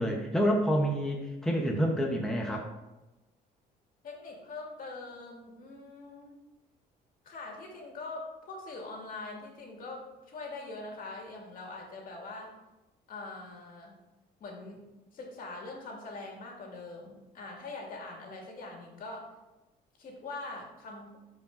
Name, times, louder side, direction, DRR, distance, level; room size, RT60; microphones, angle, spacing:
voice 1, 0.0-2.7, equal, 5° left, 0 dB, 0.9 m, -28 dB
voice 2, 4.0-6.4 7.2-12.5 13.1-13.9 14.4-14.8 15.1-19.3 20.0-21.2, left 3 dB, 55° left, -1 dB, 2.1 m, -43 dB
11.0 x 4.8 x 2.6 m, 1.0 s
cardioid pair, 110°, 17 cm